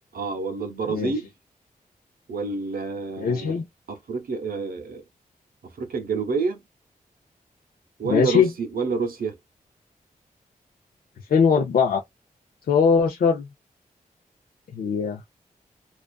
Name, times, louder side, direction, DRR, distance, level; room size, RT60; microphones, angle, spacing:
voice 1, 0.1-1.3 2.3-3.6 3.9-5.0 5.6-6.6 8.0-9.4, right 4 dB, 85° right, 0.7 m, -28 dB
voice 2, 3.2-3.7 8.0-8.5 11.3-12.0 12.7-13.5 14.7-15.2, left 5 dB, 90° left, 0.5 m, -20 dB
2.4 x 2.3 x 2.2 m
wide cardioid pair, 120°, 15 cm